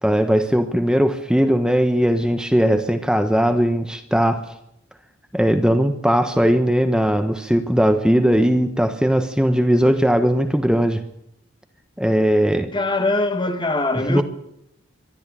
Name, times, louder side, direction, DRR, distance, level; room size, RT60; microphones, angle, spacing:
voice 1, 0.0-4.5 5.3-11.0 12.0-12.7 14.1-14.2, equal, 5° right, 1.1 m, -18 dB
voice 2, 12.7-14.2, left 2 dB, 25° left, 1.8 m, -22 dB
23.0 x 13.5 x 9.9 m
head